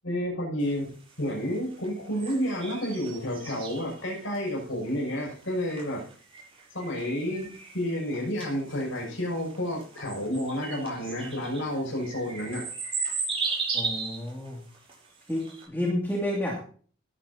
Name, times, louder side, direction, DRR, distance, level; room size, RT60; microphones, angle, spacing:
voice 1, 0.0-0.9 1.2-6.0 6.7-12.7, equal, 85° left, -1 dB, 6.7 m, -30 dB
sound 1, 0.6-15.6, right 4 dB, 30° right, 7.7 m, -36 dB
voice 2, 13.7-14.6 15.3-16.6, left 1 dB, 10° left, -3 dB, 2.5 m, -30 dB
19.0 x 11.0 x 2.9 m, 0.43 s
head